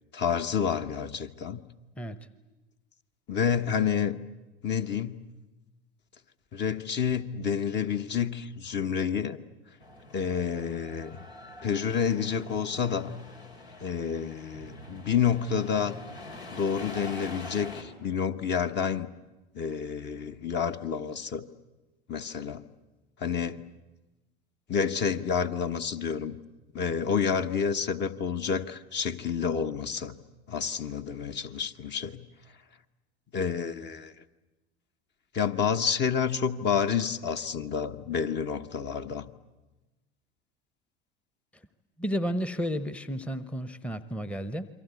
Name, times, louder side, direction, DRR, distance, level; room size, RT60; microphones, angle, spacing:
voice 1, 0.1-1.6 3.3-4.2 4.6-5.2 6.5-9.4 10.1-11.2 11.6-13.2 13.8-15.9 16.5-19.1 19.5-21.5 22.1-22.7 23.2-23.7 24.7-26.4 26.7-30.2 30.5-32.3 33.3-34.1 35.3-39.3, left 7 dB, 35° left, 8 dB, 1.2 m, -29 dB
voice 2, 2.0-2.3 42.0-44.7, equal, 5° left, 13 dB, 0.9 m, -32 dB
sound 1, 9.8-17.8, left 1 dB, 80° left, 3.9 m, -45 dB
28.5 x 23.5 x 8.3 m, 1.1 s
hypercardioid pair, 85°, 31 cm